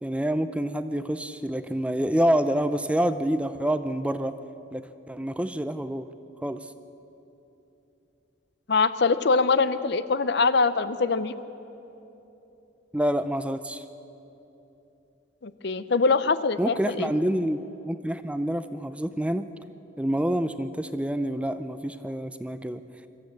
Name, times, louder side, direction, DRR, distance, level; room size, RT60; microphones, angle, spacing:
voice 1, 0.0-4.3 4.7-6.1 6.4-6.7 12.9-13.8 16.6-19.5 20.0-22.8, right 1 dB, 5° right, 11 dB, 0.4 m, -27 dB
voice 2, 8.7-11.3 15.4-17.1, left 4 dB, 60° left, 13 dB, 0.7 m, -23 dB
24.0 x 14.0 x 8.4 m, 3.0 s
head